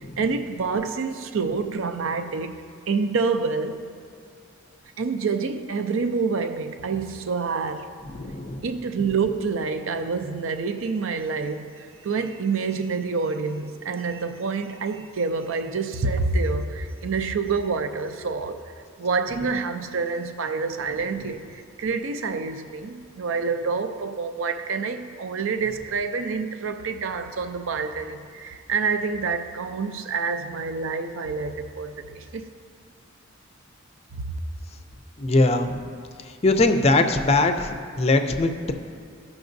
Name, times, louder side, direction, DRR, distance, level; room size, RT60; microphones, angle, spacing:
voice 1, 0.2-2.6 2.9-3.8 5.0-7.9 8.6-18.6 19.0-32.5 34.2-34.3, right 4 dB, 70° right, 0.5 m, -27 dB
voice 2, 8.1-8.7 35.2-35.8 36.4-38.7, left 2 dB, 30° left, 0.4 m, -21 dB
15.5 x 5.9 x 2.6 m
head